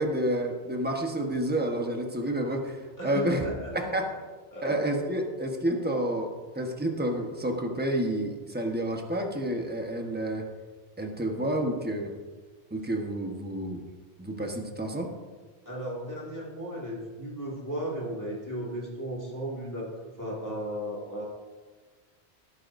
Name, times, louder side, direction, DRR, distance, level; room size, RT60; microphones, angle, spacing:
voice 1, 0.0-2.8 3.0-3.4 3.7-4.1 4.6-6.3 6.5-10.4 11.0-12.1 12.7-13.8 14.2-15.1, right 1 dB, 10° right, 2 dB, 1.2 m, -29 dB
voice 2, 3.0-4.2 4.5-4.8 15.7-19.9 20.2-21.3, equal, 15° left, -4 dB, 2.1 m, -35 dB
17.0 x 9.6 x 2.7 m, 1.4 s
omnidirectional pair, 1.1 m